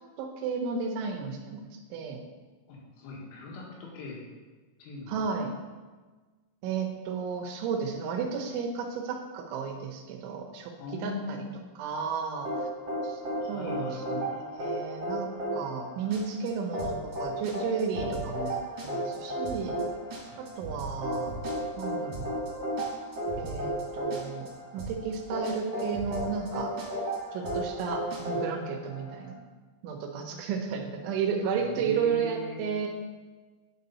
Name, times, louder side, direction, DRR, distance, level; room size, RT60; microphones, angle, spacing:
voice 1, 0.2-2.2 5.1-5.5 6.6-10.7 11.0-11.4 11.8-12.7 13.0-13.2 13.5-19.8 20.4-21.3 21.8-22.3 23.4-24.5 24.7-26.7 27.3-29.4 29.8-32.9, right 6 dB, 75° right, 2 dB, 3.2 m, -33 dB
voice 2, 2.7-4.2 4.8-5.3 10.8-11.7 13.4-14.3 20.2-20.4 31.6-32.6, left 3 dB, 80° left, -2 dB, 4.4 m, -40 dB
sound 1, 12.4-29.3, right 1 dB, 30° right, 2.8 m, -34 dB
sound 2, 16.1-16.5 16.8-17.2 17.4-17.5 17.8-18.5 18.8-19.2 19.4-19.8 20.1-21.8 22.1-22.5 22.8-23.8 24.1-24.5 24.8-25.2 25.4-25.5 25.8-26.5 26.8-27.2 27.4-27.8 28.1-28.2, right 3 dB, 50° right, 2.9 m, -40 dB
9.9 x 6.8 x 4.1 m, 1.3 s
omnidirectional pair, 5.8 m